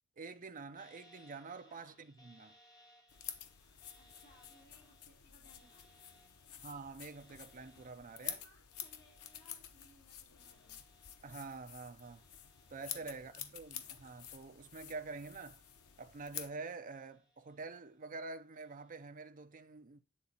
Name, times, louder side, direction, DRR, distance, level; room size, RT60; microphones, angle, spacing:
voice 1, 0.2-2.6 6.6-8.4 11.2-12.2 12.7-15.6 16.0-20.0, right 4 dB, 35° right, 0.6 m, -47 dB
sound 1, 0.8-13.3 13.6-14.8 15.3-16.5 16.9-18.0 18.5-19.1, equal, 20° left, 1.5 m, -68 dB
voice 2, 1.6-2.2 3.9-6.3 8.0-10.8 12.7-13.6, left 1 dB, 50° left, 3.5 m, -67 dB
sound 2, 3.1-16.5, left 9 dB, 80° left, 0.9 m, -50 dB
8.8 x 3.9 x 4.1 m
head